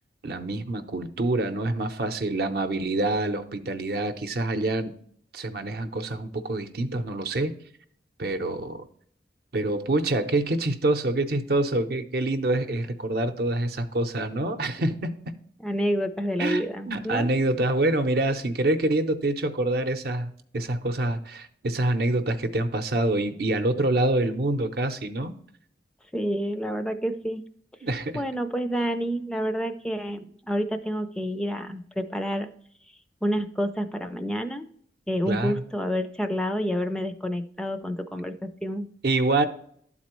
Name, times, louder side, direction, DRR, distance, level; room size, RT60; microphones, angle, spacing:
voice 1, 0.2-4.9 5.3-7.6 8.2-8.9 9.5-15.3 16.4-25.3 27.8-28.2 35.3-35.6 39.0-39.5, right 2 dB, 60° right, 0.7 m, -26 dB
voice 2, 15.6-17.3 26.1-27.4 28.1-32.5 33.2-34.7 35.1-38.9, equal, 5° left, 0.3 m, -28 dB
11.5 x 4.1 x 3.0 m
head